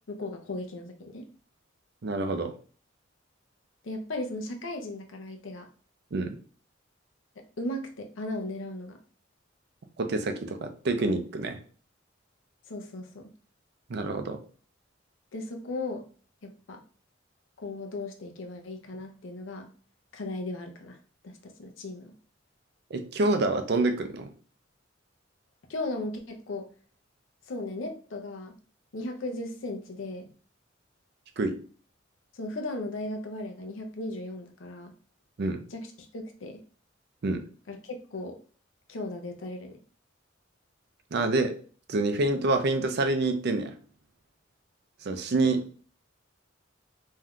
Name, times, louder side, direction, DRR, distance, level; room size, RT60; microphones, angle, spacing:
voice 1, 0.1-1.3 3.8-5.7 7.6-9.0 12.7-13.2 15.3-16.0 16.4-16.8 17.6-19.7 20.1-21.0 21.2-22.1 25.7-26.7 27.5-28.5 28.9-30.3 32.3-34.9 35.7-36.6 37.7-38.4 38.9-39.8, left 2 dB, 80° left, 4 dB, 0.6 m, -36 dB
voice 2, 2.0-2.5 6.1-6.3 10.0-11.6 13.9-14.4 22.9-24.3 31.4-31.5 35.4-35.6 37.2-37.4 41.1-41.5 41.9-43.7 45.0-45.6, right 2 dB, 55° right, 7 dB, 0.5 m, -27 dB
3.5 x 2.7 x 2.3 m, 0.40 s
head